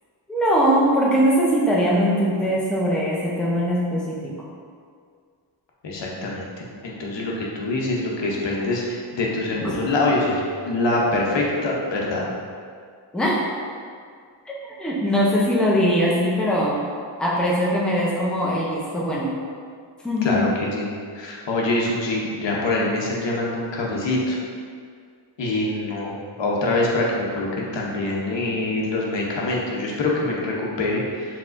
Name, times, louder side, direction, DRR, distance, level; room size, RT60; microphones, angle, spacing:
voice 1, 0.3-4.3 9.6-9.8 13.1-13.4 14.5-16.8 17.2-19.3 20.0-20.4, equal, ahead, -5 dB, 0.6 m, -21 dB
voice 2, 5.8-12.3 20.2-24.4 25.4-31.4, left 2 dB, 70° left, -3 dB, 0.8 m, -25 dB
4.7 x 3.5 x 2.5 m, 2.1 s
wide cardioid pair, 110°, 45 cm